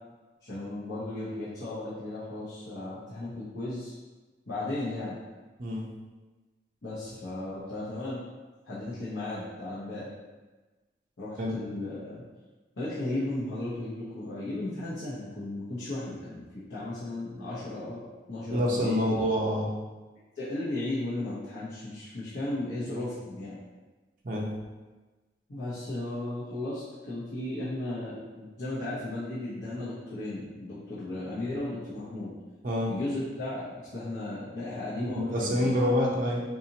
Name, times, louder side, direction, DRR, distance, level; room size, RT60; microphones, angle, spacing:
voice 1, 0.4-4.0 4.5-5.2 6.8-8.2 8.6-10.1 11.2-12.2 12.8-16.4 16.7-19.1 20.4-23.6 25.5-32.4 32.9-35.7, left 2 dB, 75° left, -10 dB, 0.8 m, -35 dB
voice 2, 18.5-19.7 24.2-24.5 32.6-32.9 35.0-36.4, equal, 45° right, -4 dB, 0.6 m, -27 dB
4.1 x 2.7 x 2.8 m, 1.2 s
head